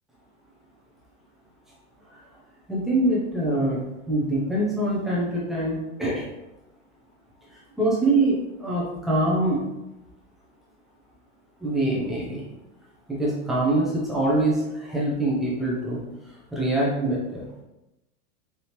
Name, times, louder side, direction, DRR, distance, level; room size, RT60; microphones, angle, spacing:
voice 1, 2.7-6.3 7.8-9.7 11.6-12.4 13.1-16.0 16.5-17.6, right 1 dB, ahead, -6 dB, 0.3 m, -24 dB
4.1 x 3.4 x 2.8 m, 0.93 s
hypercardioid pair, 125°, 43 cm